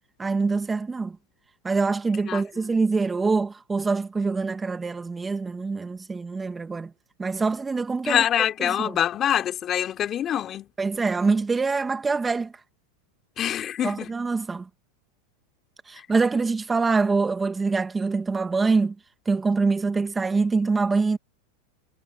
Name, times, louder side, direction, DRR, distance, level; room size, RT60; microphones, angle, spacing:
voice 1, 0.2-1.2 1.6-6.9 7.2-8.2 8.6-8.9 10.8-12.5 13.8-14.7 15.9-18.9 19.3-21.2, right 4 dB, 15° right, 1.9 m, -24 dB
voice 2, 2.2-2.6 8.0-10.7 13.4-14.1 15.9-16.0, left 10 dB, 35° left, 3.4 m, -25 dB
hypercardioid pair, 105°, 0 cm